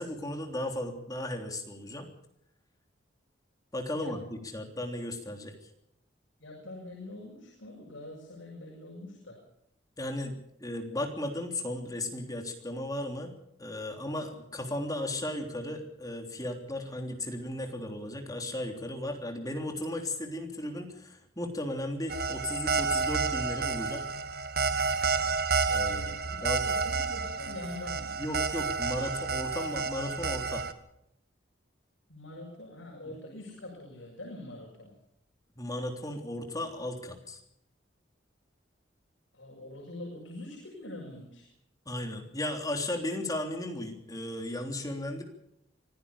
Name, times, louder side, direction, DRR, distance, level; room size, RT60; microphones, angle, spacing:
voice 1, 0.0-2.1 3.7-5.5 10.0-13.3 13.6-24.0 25.7-26.6 28.2-30.6 33.0-33.1 35.6-37.4 41.8-45.2, left 1 dB, 20° left, 3 dB, 3.4 m, -35 dB
voice 2, 6.4-9.4 25.8-26.4 26.6-28.2 32.1-34.9 39.3-41.5, left 1 dB, 80° left, -2 dB, 6.5 m, -44 dB
sound 1, 22.1-30.7, right 4 dB, 55° right, 1.5 m, -30 dB
25.0 x 16.5 x 7.0 m, 0.76 s
head